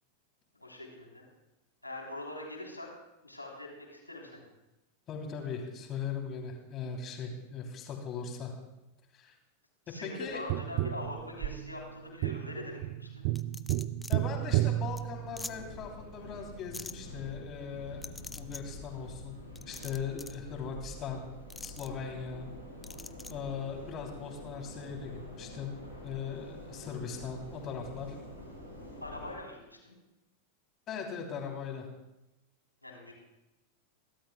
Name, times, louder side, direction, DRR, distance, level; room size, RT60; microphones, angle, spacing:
voice 1, 0.6-1.3 1.8-2.9 3.2-4.5 9.9-13.2 29.0-29.9 32.8-33.1, left 2 dB, 85° left, -1 dB, 3.3 m, -43 dB
voice 2, 5.1-8.5 9.1-9.3 9.9-10.4 14.1-21.3 21.6-22.5 23.3-25.7 26.0-28.2 30.9-31.9, left 6 dB, 30° left, 2 dB, 3.0 m, -39 dB
Tap, 10.5-15.8 18.4-18.5, right 15 dB, 45° right, 0.4 m, -32 dB
sound 1, 13.3-14.1 14.6-14.7 15.0-15.1 15.4-15.5 16.7-16.9 18.0-18.6 19.5-20.4 21.5-21.9 22.8-23.3, left 3 dB, 10° left, 0.5 m, -43 dB
sound 2, 14.2-29.3, left 1 dB, 85° right, 4.6 m, -47 dB
28.0 x 12.5 x 2.2 m, 0.96 s
figure-of-eight pair, 90°, 0 cm